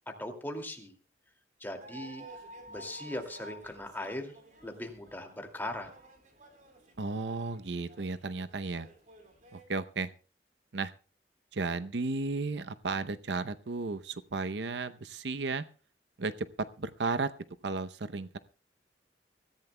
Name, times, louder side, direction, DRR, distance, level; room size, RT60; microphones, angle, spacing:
voice 1, 0.2-0.9 1.6-2.2 2.7-4.4 4.6-5.9, left 1 dB, 10° left, 3 dB, 2.3 m, -39 dB
sound 1, 1.8-9.6, right 2 dB, 45° right, 3.9 m, -52 dB
voice 2, 7.0-8.9 9.5-10.1 10.7-10.9 11.5-15.6 16.2-17.3 17.6-18.4, right 3 dB, 85° right, 12 dB, 0.7 m, -34 dB
24.0 x 14.5 x 2.2 m, 0.38 s
head